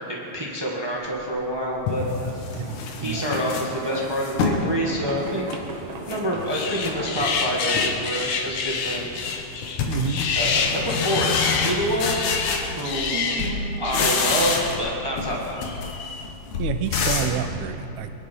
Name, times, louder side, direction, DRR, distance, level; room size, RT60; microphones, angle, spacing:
voice 1, 0.0-2.1 3.0-5.5 6.1-9.1 10.3-12.1 12.8-13.1 13.8-15.7, equal, 25° right, -3 dB, 0.6 m, -27 dB
sound 1, 1.2-1.3 1.9-4.7 5.1-6.2 6.5-7.3 7.7-8.1 8.4-13.1 13.4-14.9 15.2-17.4, left 4 dB, 75° left, 2.7 m, -28 dB
sound 2, 2.0-9.0, right 3 dB, 55° right, 1.5 m, -38 dB
voice 2, 2.5-3.2 9.9-10.2 13.1-13.8 16.6-18.1, right 8 dB, 80° right, 8 dB, 2.2 m, -29 dB
sound 3, 6.5-14.9 15.6-16.2, left 5 dB, 60° left, 1.5 m, -28 dB
22.0 x 11.0 x 5.5 m, 2.9 s
omnidirectional pair, 3.3 m